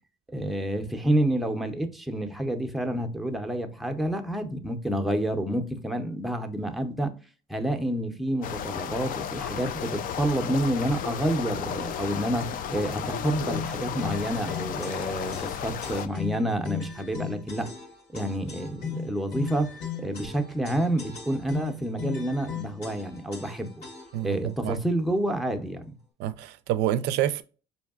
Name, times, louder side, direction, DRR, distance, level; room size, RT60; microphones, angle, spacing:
voice 1, 0.3-7.1 7.5-17.7 18.1-23.7 24.2-26.0, right 1 dB, ahead, 0.5 m, -29 dB
sound 1, 8.4-16.1, left 8 dB, 55° left, 0.4 m, -33 dB
sound 2, 13.5-24.3, left 6 dB, 75° left, 1.3 m, -37 dB
voice 2, 24.1-24.8 26.2-27.4, right 12 dB, 85° right, 0.4 m, -28 dB
4.5 x 2.7 x 2.3 m
cardioid pair, 110°, 17 cm